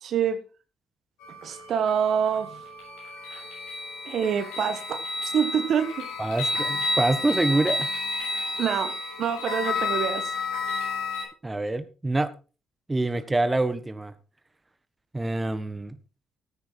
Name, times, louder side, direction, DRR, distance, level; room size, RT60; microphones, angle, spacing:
voice 1, 0.0-0.4 1.4-2.6 4.0-6.1 8.6-10.3, right 8 dB, 65° right, 10 dB, 1.6 m, -26 dB
sound 1, 1.2-11.2, left 3 dB, 85° left, 7.0 m, -31 dB
voice 2, 6.2-7.9 11.4-12.3 12.9-14.1 15.1-15.9, right 2 dB, 20° right, 11 dB, 1.5 m, -26 dB
14.0 x 9.5 x 4.7 m, 0.34 s
supercardioid pair, 55°, 0 cm